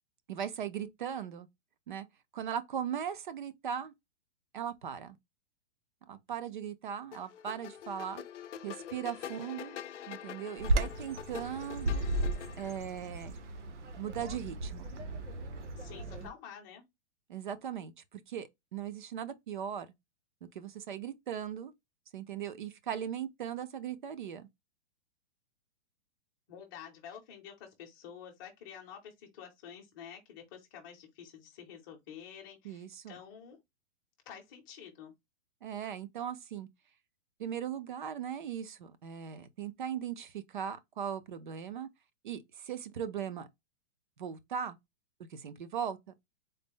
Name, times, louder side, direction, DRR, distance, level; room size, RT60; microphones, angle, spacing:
voice 1, 0.3-1.5 1.9-2.1 2.3-3.9 4.5-5.2 6.1-8.2 8.6-9.8 10.1-12.1 12.6-13.3 14.0-14.8 17.3-19.9 20.5-21.7 22.1-24.5 32.6-33.2 35.6-36.7 37.4-41.9 42.2-43.5 44.2-44.8 45.3-46.0, right 8 dB, 45° right, 0.5 m, -38 dB
sound 1, 7.1-12.8, left 10 dB, 85° left, 0.5 m, -45 dB
Bird vocalization bird call bird song, 10.6-16.3, right 1 dB, 85° right, 1.1 m, -35 dB
voice 2, 15.8-16.8 26.5-33.6 34.3-35.1, left 8 dB, 20° left, 0.7 m, -49 dB
4.0 x 2.0 x 3.5 m
hypercardioid pair, 175°, 35 cm